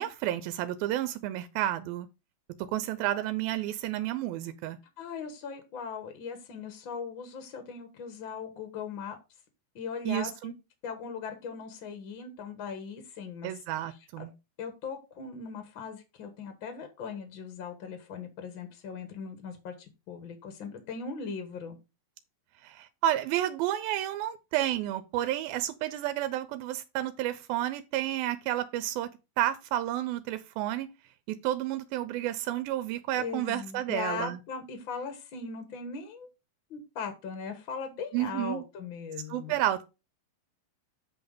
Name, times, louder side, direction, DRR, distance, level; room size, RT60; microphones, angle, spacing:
voice 1, 0.0-2.1 2.7-4.8 10.1-10.5 13.4-14.3 22.6-29.1 29.4-30.9 31.3-34.4 38.1-38.6 39.3-39.8, right 13 dB, 85° right, 2.4 m, -31 dB
voice 2, 5.0-9.2 9.7-10.5 10.8-13.5 14.6-21.8 33.1-36.3 36.7-39.6, left 5 dB, 60° left, 1.3 m, -39 dB
8.0 x 4.0 x 5.2 m
omnidirectional pair, 4.2 m